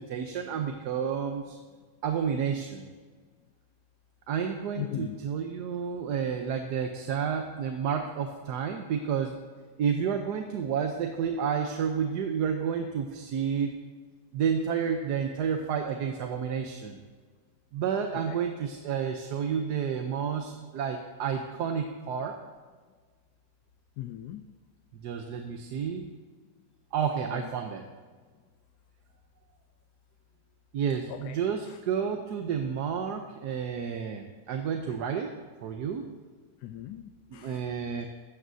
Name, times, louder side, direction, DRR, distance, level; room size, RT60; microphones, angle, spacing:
voice 1, 0.0-1.6 2.0-2.9 4.3-9.4 9.8-13.7 14.3-17.0 17.7-22.4 24.9-26.1 26.9-27.8 30.7-35.3 35.6-36.0 37.3-38.1, right 7 dB, 80° right, 4 dB, 1.4 m, -30 dB
voice 2, 4.8-5.2 18.3-18.4 24.0-24.4 27.3-27.5 31.1-31.4 36.6-37.6, left 12 dB, 90° left, 7 dB, 1.3 m, -38 dB
15.5 x 13.5 x 2.7 m, 1.5 s
omnidirectional pair, 1.7 m